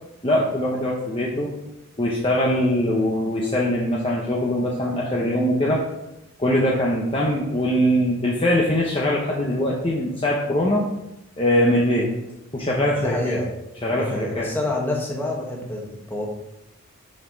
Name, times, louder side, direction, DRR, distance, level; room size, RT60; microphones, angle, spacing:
voice 1, 0.2-1.5 2.0-5.8 6.4-10.8 11.4-12.1 12.5-13.4 13.8-14.5, left 1 dB, 25° left, -3 dB, 0.8 m, -22 dB
voice 2, 12.9-13.5 13.9-16.3, left 1 dB, 10° left, -2 dB, 1.3 m, -27 dB
6.5 x 5.7 x 4.6 m, 0.91 s
head